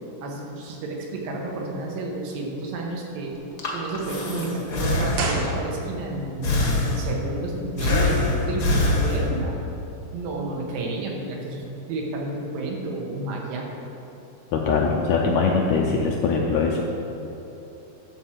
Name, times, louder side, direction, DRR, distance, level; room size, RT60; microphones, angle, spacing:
voice 1, 0.2-3.4 3.7-6.6 6.8-9.6 10.1-13.7, right 2 dB, 90° right, -1 dB, 3.1 m, -31 dB
Breathing, 3.4-5.7 6.4-7.3 7.8-9.6, left 2 dB, 60° left, 1.0 m, -24 dB
sound 1, 5.1-6.2 6.5-6.6, right 3 dB, 65° right, 1.9 m, -30 dB
voice 2, 14.5-16.8, left 4 dB, 80° left, 0 dB, 1.6 m, -22 dB
11.5 x 4.5 x 7.4 m, 3.0 s
omnidirectional pair, 3.9 m